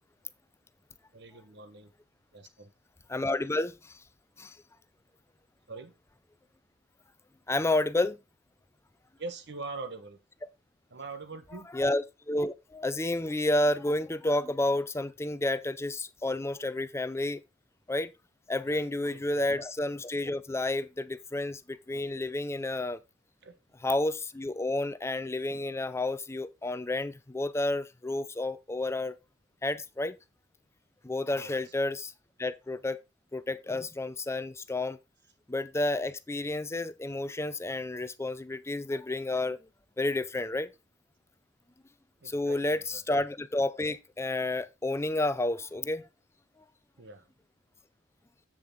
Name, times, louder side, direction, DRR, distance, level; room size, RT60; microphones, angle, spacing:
voice 1, 1.1-1.9 2.3-2.7 5.7-5.9 9.2-10.2 10.9-11.7 18.6-18.9 19.1-19.5 23.4-23.6 31.3-31.7 42.2-43.0 47.0-47.3, right 3 dB, 65° right, 1.1 m, -43 dB
voice 2, 3.1-3.7 4.4-4.5 7.5-8.2 11.7-17.4 17.9-18.1 18.5-23.0 23.8-29.1 29.6-30.1 31.0-32.1 32.4-33.0 33.3-35.0 35.5-39.6 40.0-40.7 42.3-42.8 43.1-46.0, left 2 dB, 15° left, 0.5 m, -30 dB
7.9 x 7.1 x 3.7 m
head